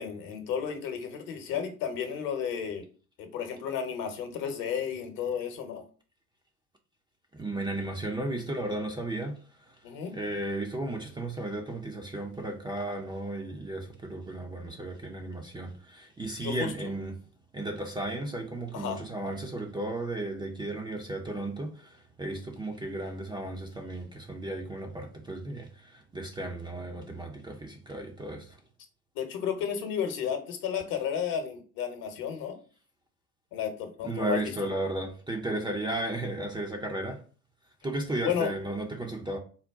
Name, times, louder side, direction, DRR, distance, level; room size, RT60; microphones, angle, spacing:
voice 1, 0.0-2.8 3.2-5.8 9.8-10.1 16.4-16.9 18.7-19.0 29.1-32.6 33.5-34.4 38.2-38.5, left 8 dB, 50° left, 1.0 m, -32 dB
voice 2, 7.3-9.6 10.1-17.2 17.5-28.6 34.0-37.2 37.8-39.4, right 2 dB, 10° right, 0.5 m, -34 dB
3.9 x 2.2 x 3.5 m
figure-of-eight pair, 65°, 43 cm